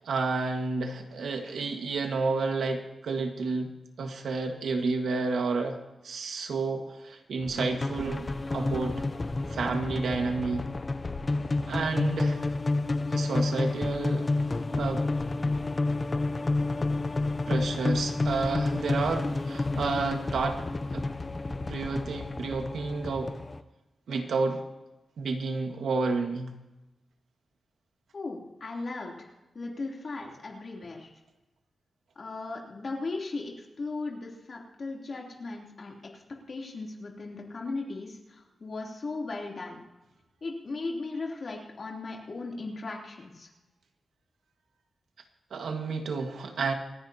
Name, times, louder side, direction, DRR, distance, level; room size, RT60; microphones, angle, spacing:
voice 1, 0.0-3.7 4.0-8.3 8.5-9.0 9.5-10.7 11.7-12.4 13.1-14.3 14.8-15.1 17.5-20.6 20.9-21.0 21.7-23.4 24.1-24.6 25.2-26.5 45.5-46.7, right 4 dB, 80° right, 4 dB, 1.7 m, -30 dB
sound 1, 7.4-23.6, left 2 dB, 25° left, 0.6 m, -30 dB
voice 2, 28.1-29.3 29.5-31.1 32.1-39.8 40.4-43.5, left 3 dB, 40° left, -1 dB, 3.2 m, -37 dB
27.5 x 10.5 x 2.9 m, 1.0 s
wide cardioid pair, 165°, 0 cm